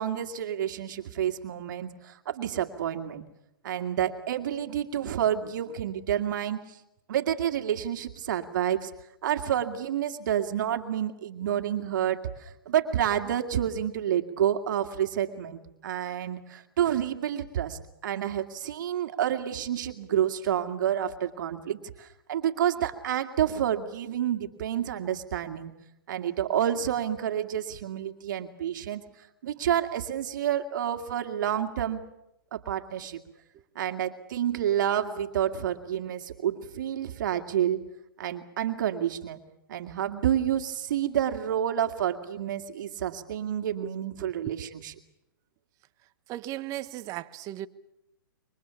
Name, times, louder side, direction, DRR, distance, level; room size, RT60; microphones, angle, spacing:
voice 1, 0.0-3.2 3.6-6.8 7.1-8.9 9.2-25.7 26.1-29.0 29.4-32.0 32.5-33.2 33.8-37.8 38.2-39.4 39.7-44.9, right 10 dB, 60° right, 2.2 m, -29 dB
voice 2, 44.2-44.6 46.3-47.7, right 14 dB, 30° right, 1.2 m, -37 dB
28.0 x 24.0 x 7.2 m
hypercardioid pair, 135°, 12 cm